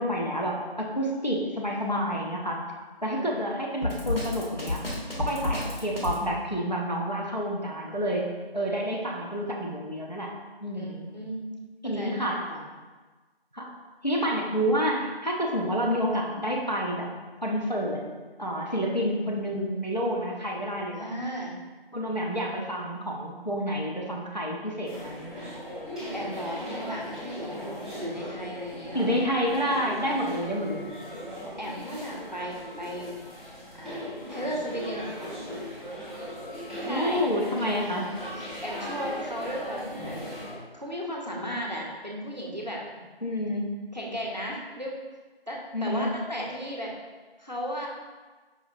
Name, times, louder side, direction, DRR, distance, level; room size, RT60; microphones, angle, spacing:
voice 1, 0.0-2.6 3.0-4.8 5.2-8.3 8.5-10.3 10.6-11.1 11.8-12.5 13.5-13.7 14.0-17.1 17.4-18.0 18.4-21.1 21.9-25.5 28.9-30.9 36.9-38.1 43.2-43.6 45.7-46.1, equal, 45° left, -2 dB, 0.5 m, -29 dB
Drum kit, 3.8-6.2, left 2 dB, 70° left, 1.1 m, -30 dB
voice 2, 10.7-11.5 11.8-12.6 19.2-19.5 21.0-21.6 26.0-29.2 31.6-33.2 33.7-34.0 34.3-35.3 36.9-37.2 38.4-40.2 40.7-42.8 43.9-45.0 45.5-46.9 47.4-47.9, equal, 45° right, -2 dB, 0.5 m, -35 dB
sound 1, 24.8-40.5, equal, ahead, 0.7 m, -38 dB
4.9 x 2.6 x 2.6 m, 1.3 s
figure-of-eight pair, 175°, 31 cm